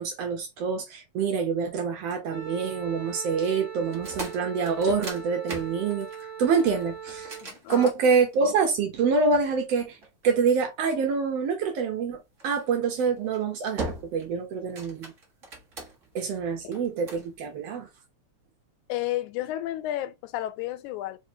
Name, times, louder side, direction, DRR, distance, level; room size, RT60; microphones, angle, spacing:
voice 1, 0.0-6.1 6.4-7.4 7.7-10.0 10.2-15.1 16.1-17.9, right 5 dB, 70° right, 1.6 m, -26 dB
Wind instrument woodwind instrument, 2.3-7.5, right 7 dB, 50° right, 1.9 m, -40 dB
sound 1, 3.9-8.6 9.3-10.6 12.4-12.7 13.2-13.4 13.8-14.3 14.6-16.2 16.7-17.3, right 2 dB, 85° right, 0.6 m, -39 dB
voice 2, 7.4-7.9 18.9-21.2, left 14 dB, 85° left, 2.0 m, -32 dB
4.4 x 3.1 x 2.7 m
omnidirectional pair, 3.4 m